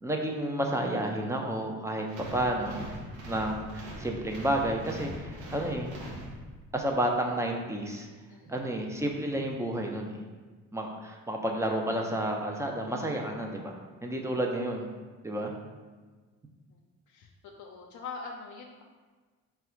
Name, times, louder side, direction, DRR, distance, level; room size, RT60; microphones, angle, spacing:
voice 1, 0.0-2.1 2.3-2.9 3.3-5.9 6.7-8.1 8.5-10.1 10.7-13.7 14.0-14.9 15.2-15.5, right 1 dB, 10° right, 1 dB, 0.5 m, -31 dB
sound 1, 2.1-6.8, equal, 85° right, 0.9 m, -42 dB
voice 2, 17.1-18.8, left 4 dB, 70° left, 0 dB, 0.5 m, -44 dB
3.9 x 2.3 x 4.4 m, 1.4 s
cardioid pair, 90°, 30 cm